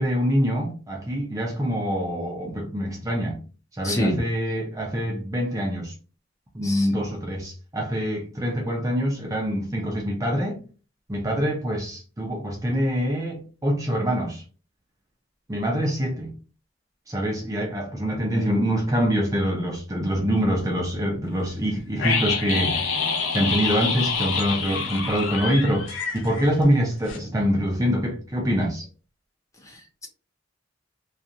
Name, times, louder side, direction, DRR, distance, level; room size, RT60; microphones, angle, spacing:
voice 1, 0.0-3.4 3.7-6.0 6.5-10.6 11.1-14.4 15.5-16.3 17.1-22.8 23.3-28.9, equal, 20° right, 0.5 m, -25 dB
voice 2, 3.8-4.2 6.6-6.9 29.6-30.1, left 1 dB, 15° left, 0.8 m, -27 dB
sound 1, 22.0-26.8 27.1-27.2, left 5 dB, 85° left, 0.6 m, -27 dB
2.4 x 2.4 x 2.7 m
head